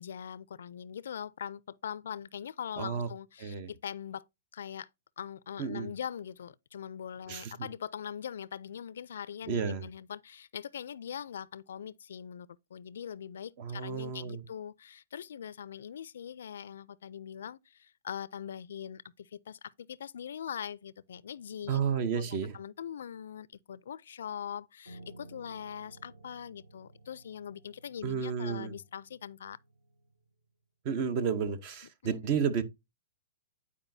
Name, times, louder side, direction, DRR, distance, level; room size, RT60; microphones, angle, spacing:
voice 1, 0.0-4.2 4.5-4.9 5.2-21.9 22.2-29.6 32.0-32.3, left 8 dB, 80° left, 0.4 m, -42 dB
voice 2, 2.8-3.1 3.4-3.7 5.6-5.9 7.3-7.7 9.5-9.8 13.6-14.4 21.7-22.6 28.0-28.7 30.8-32.6, right 6 dB, 35° right, 0.8 m, -32 dB
Piano, 24.9-30.1, right 2 dB, 90° right, 3.0 m, -55 dB
9.8 x 4.8 x 2.7 m
hypercardioid pair, 170°, 0 cm